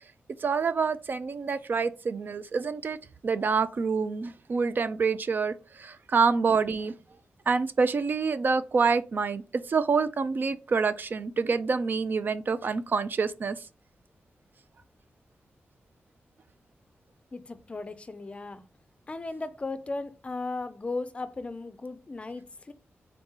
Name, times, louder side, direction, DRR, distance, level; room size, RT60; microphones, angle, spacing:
voice 1, 0.4-3.0 3.2-6.9 7.5-13.6, right 5 dB, 50° right, 0.4 m, -27 dB
voice 2, 17.3-18.6 19.1-22.7, left 3 dB, 30° left, 0.4 m, -36 dB
3.9 x 2.8 x 3.6 m
wide cardioid pair, 130°, 4 cm